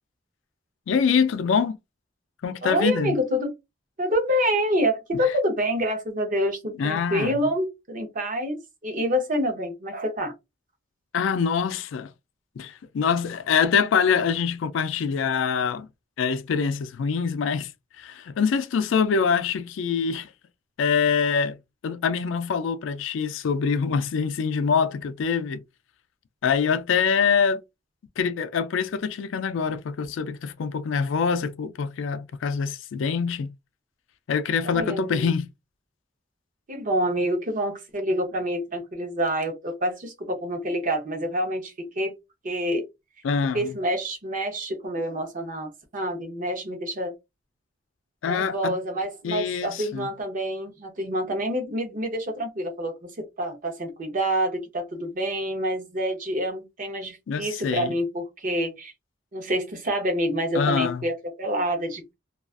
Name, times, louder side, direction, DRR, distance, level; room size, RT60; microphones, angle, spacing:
voice 1, 0.9-1.8 2.4-3.1 6.8-7.3 11.1-12.1 12.6-15.9 16.2-17.7 18.0-20.3 20.8-21.6 21.8-25.6 26.4-27.6 28.2-33.5 34.3-35.5 43.2-43.8 48.2-48.8 49.2-50.1 57.3-57.9 60.5-61.1, left 6 dB, 80° left, 0.4 m, -24 dB
voice 2, 2.6-3.5 4.0-10.3 34.6-35.3 36.7-42.1 42.4-42.8 43.5-47.1 48.2-58.9 59.3-62.1, equal, 45° right, 0.7 m, -27 dB
2.4 x 2.3 x 2.3 m
head